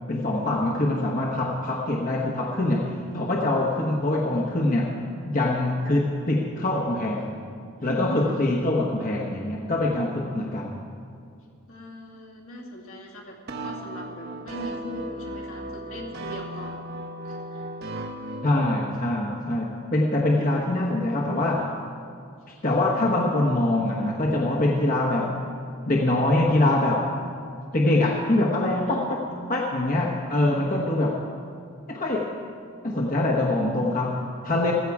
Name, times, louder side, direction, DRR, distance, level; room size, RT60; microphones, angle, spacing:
voice 1, 0.1-5.0 5.3-7.3 7.8-10.8 18.4-21.7 22.6-25.3 25.9-27.1 27.7-29.2 29.5-31.2 31.9-32.4 32.8-34.7, left 1 dB, 40° left, -2 dB, 1.1 m, -24 dB
voice 2, 7.8-8.4 10.5-10.6 11.4-16.8 17.2-17.7 22.4-22.5 28.9-29.1, equal, 70° left, -2 dB, 2.5 m, -40 dB
sound 1, 13.5-18.8, right 1 dB, 45° right, 1.0 m, -36 dB
15.5 x 14.5 x 4.8 m, 2.3 s
head